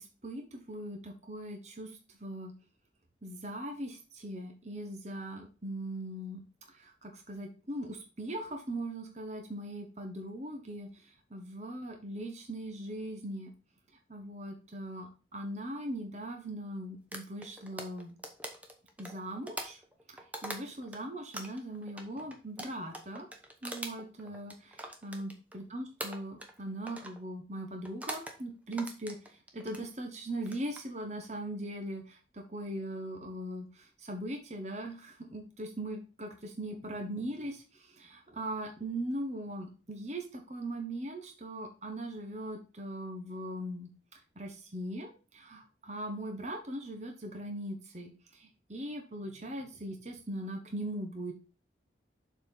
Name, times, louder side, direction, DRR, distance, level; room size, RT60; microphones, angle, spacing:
voice 1, 0.0-1.9 2.2-2.5 3.2-6.4 6.8-10.9 11.3-13.5 14.1-18.2 19.0-19.8 20.4-23.3 23.6-29.2 29.5-33.7 34.0-43.9 44.4-51.3, right 1 dB, 35° right, 3 dB, 1.2 m, -40 dB
sound 1, 17.1-21.0 21.3-25.6 26.0-26.6 26.9-27.2 27.8-28.4 28.7-29.8 30.4-30.8, right 1 dB, 10° right, 0.9 m, -42 dB
7.1 x 4.4 x 5.4 m, 0.34 s
head